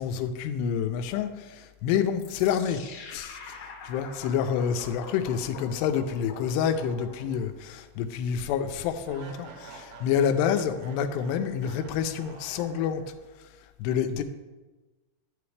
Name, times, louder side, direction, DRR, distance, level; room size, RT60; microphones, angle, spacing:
voice 1, 0.0-2.8 3.1-13.0 13.8-14.2, left 8 dB, 90° left, 8 dB, 2.7 m, -28 dB
sound 1, 2.2-7.5, left 4 dB, 70° left, 1.8 m, -44 dB
sound 2, 6.4-7.7 8.1-8.2 9.1-13.4, right 4 dB, 75° right, 3.0 m, -49 dB
11.5 x 6.9 x 3.2 m, 1.2 s
omnidirectional pair, 4.7 m